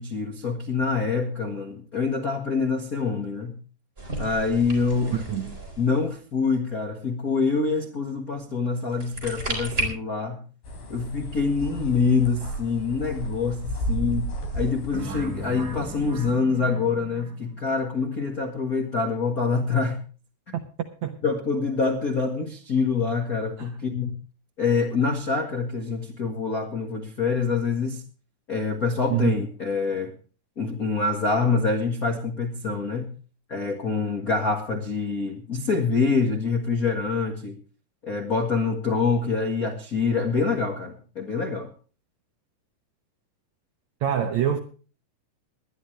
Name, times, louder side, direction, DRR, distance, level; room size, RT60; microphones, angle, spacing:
voice 1, 0.0-3.6 4.2-5.2 5.8-10.4 10.9-20.0 20.5-20.6 21.2-24.2 24.6-28.0 28.5-30.1 30.6-33.1 33.5-37.6 38.0-41.7, left 4 dB, 75° left, 0.8 m, -25 dB
sound 1, 4.0-6.1 8.8-9.8, right 2 dB, 15° right, 4.0 m, -33 dB
voice 2, 5.1-5.6 21.0-21.2 23.6-23.7 29.1-29.3 44.0-44.6, right 10 dB, 80° right, 1.6 m, -25 dB
sound 2, 10.6-16.3, right 1 dB, 55° left, 5.2 m, -33 dB
sound 3, 14.9-17.8, right 2 dB, 60° right, 0.7 m, -38 dB
20.5 x 12.0 x 3.2 m
omnidirectional pair, 4.7 m